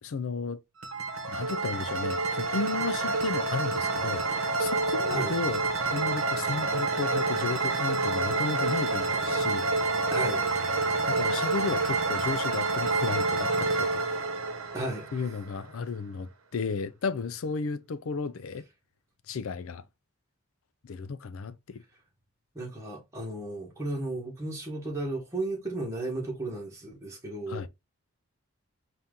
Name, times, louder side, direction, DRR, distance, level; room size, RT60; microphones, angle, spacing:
voice 1, 0.0-0.6 1.3-5.6 5.9-9.7 11.1-14.0 15.1-18.6 19.3-19.8 20.9-21.8 27.5-27.7, left 4 dB, 65° left, 0.4 m, -34 dB
sound 1, 0.8-15.6, right 3 dB, 65° right, 0.9 m, -28 dB
voice 2, 10.1-10.4 14.7-15.1 22.5-27.7, right 2 dB, 15° right, 1.3 m, -34 dB
4.3 x 2.6 x 3.6 m
head